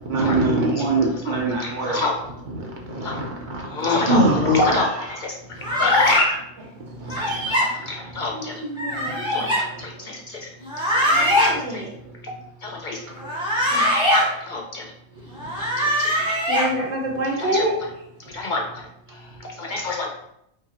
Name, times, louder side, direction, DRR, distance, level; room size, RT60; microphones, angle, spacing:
voice 1, 0.0-2.0 2.5-5.2 5.6-5.8 6.8-7.4 9.1-9.5 9.7-9.8 11.4-11.5 12.1-12.2 13.2-13.3, right 2 dB, 50° right, 0 dB, 0.9 m, -24 dB
voice 2, 1.3-2.1 3.0-3.2 3.7-5.3 5.7-6.4 7.5-7.6 7.9-8.6 9.3-10.4 10.9-11.8 12.3-12.4 12.6-13.0 13.7-13.8 14.1-14.9 15.8-16.4 17.4-17.7 18.3-18.6 19.7-20.1, left 3 dB, 60° left, 1 dB, 0.6 m, -26 dB
sound 1, 5.6-6.2 7.1-7.7 8.8-9.6 10.6-11.5 13.2-14.2 15.4-16.7, equal, 5° right, 1.2 m, -21 dB
voice 3, 8.3-10.1 11.0-11.9 13.7-13.9 16.5-17.8, right 1 dB, 80° right, 0 dB, 1.2 m, -28 dB
5.3 x 2.3 x 2.8 m, 0.76 s
omnidirectional pair, 1.1 m